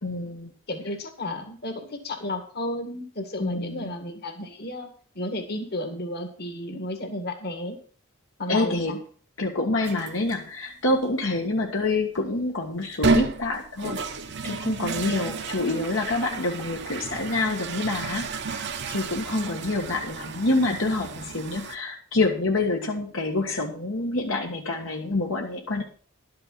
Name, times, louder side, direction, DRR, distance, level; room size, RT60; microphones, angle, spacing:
voice 1, 0.0-0.5 3.4-3.9 8.5-8.9 9.4-14.0 14.4-18.6 18.9-25.8, left 2 dB, 70° left, 0 dB, 1.6 m, -27 dB
voice 2, 0.7-7.8 8.4-9.0 15.6-15.8 19.3-19.8, left 1 dB, 50° left, 5 dB, 2.0 m, -33 dB
sound 1, 9.8-10.4 11.0-11.1 12.8-21.8, right 4 dB, 55° right, 1.0 m, -31 dB
12.0 x 6.7 x 6.2 m, 0.43 s
head